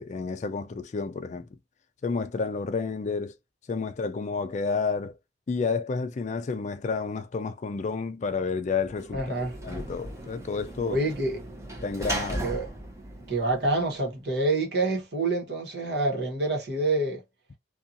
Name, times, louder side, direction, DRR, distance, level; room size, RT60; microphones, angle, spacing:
voice 1, 0.0-1.6 2.0-3.3 3.7-5.1 5.5-9.4 9.6-11.0 11.8-12.5, left 4 dB, 45° left, 0.4 m, -30 dB
Sliding door / Slam, 8.8-14.2, right 1 dB, 15° right, 0.7 m, -37 dB
voice 2, 9.1-9.5 10.9-11.4 12.4-12.7 13.3-17.2, right 2 dB, 65° right, 1.1 m, -27 dB
2.6 x 2.3 x 2.5 m
head